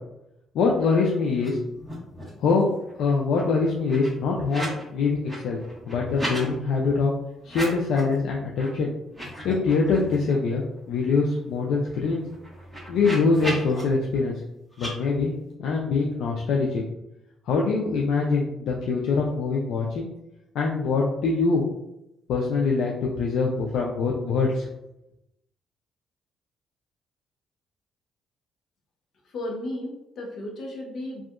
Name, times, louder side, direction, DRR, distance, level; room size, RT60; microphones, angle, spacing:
voice 1, 0.5-1.6 2.4-2.7 3.0-5.6 5.9-7.1 7.4-8.9 9.4-12.2 12.9-14.4 14.8-15.3 15.6-16.8 17.5-20.1 20.5-21.6 22.3-24.7, left 4 dB, 80° left, -1 dB, 0.3 m, -24 dB
sound 1, 1.3-1.5 1.7-2.4 2.8-4.8 5.1-6.5 7.4-8.1 8.5-8.7 9.0-10.4 10.8-10.9 11.1-13.8 14.7-14.9, equal, 5° left, 1.1 m, -36 dB
voice 2, 29.2-31.2, left 1 dB, 60° left, -1 dB, 0.7 m, -34 dB
2.6 x 2.3 x 2.4 m, 0.88 s
cardioid pair, 75°, 0 cm